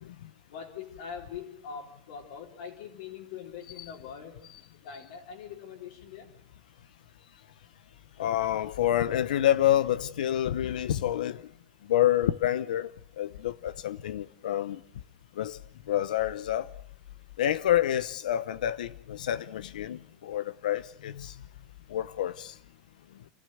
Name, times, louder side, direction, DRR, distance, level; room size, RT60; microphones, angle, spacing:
voice 1, 0.5-4.3 4.8-6.3, left 7 dB, 65° left, 4.0 m, -42 dB
voice 2, 8.2-11.4 11.9-12.9 13.2-14.8 15.4-15.6 15.9-16.7 17.4-21.3 21.9-22.5, left 12 dB, 90° left, 0.9 m, -28 dB
28.0 x 14.5 x 7.9 m
supercardioid pair, 155°, 4 cm